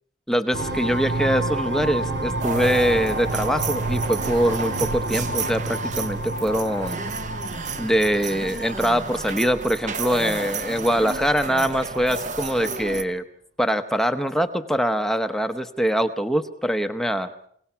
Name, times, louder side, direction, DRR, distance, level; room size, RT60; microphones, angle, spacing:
voice 1, 0.3-7.0 7.8-13.2 13.6-17.3, equal, ahead, 8 dB, 0.8 m, -23 dB
sound 1, 0.5-11.0, right 2 dB, 70° right, 2.1 m, -30 dB
sound 2, 2.4-13.0, right 4 dB, 40° right, 1.1 m, -32 dB
28.0 x 18.0 x 5.7 m, 0.63 s
head